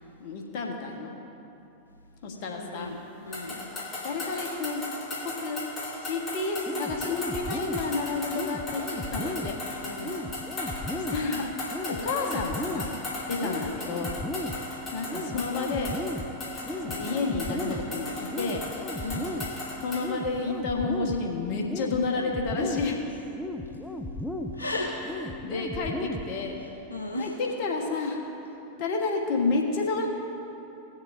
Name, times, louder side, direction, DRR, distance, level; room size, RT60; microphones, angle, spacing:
voice 1, 0.2-1.1 2.2-3.0 3.6-4.8 5.2-5.6 6.0-9.5 10.9-12.9 13.3-14.1 14.9-16.0 16.8-18.7 19.8-23.0 25.0-26.6 27.2-28.2 28.8-30.1, left 3 dB, 45° left, 1 dB, 1.3 m, -30 dB
voice 2, 2.3-2.9 3.3-3.6 9.8-10.2 13.4-13.6 16.9-17.2 19.0-19.5 24.6-24.9 26.9-27.3, left 2 dB, 80° left, -2 dB, 0.9 m, -35 dB
sound 1, 3.3-20.1, left 2 dB, 25° left, 2.3 m, -37 dB
sound 2, 6.7-26.7, left 1 dB, 5° left, 0.6 m, -36 dB
18.5 x 7.0 x 2.7 m, 2.8 s
figure-of-eight pair, 90°, 0 cm